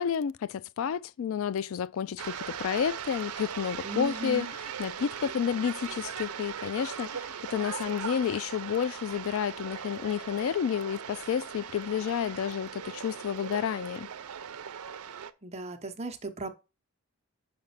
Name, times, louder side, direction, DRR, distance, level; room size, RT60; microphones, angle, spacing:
voice 1, 0.0-4.5 4.8-14.1, left 8 dB, 60° left, 0.3 m, -30 dB
sound 1, 2.2-15.3, right 8 dB, 80° right, 0.5 m, -39 dB
voice 2, 3.8-4.5 15.4-16.5, right 1 dB, 30° right, 0.8 m, -36 dB
5.2 x 5.2 x 5.6 m
head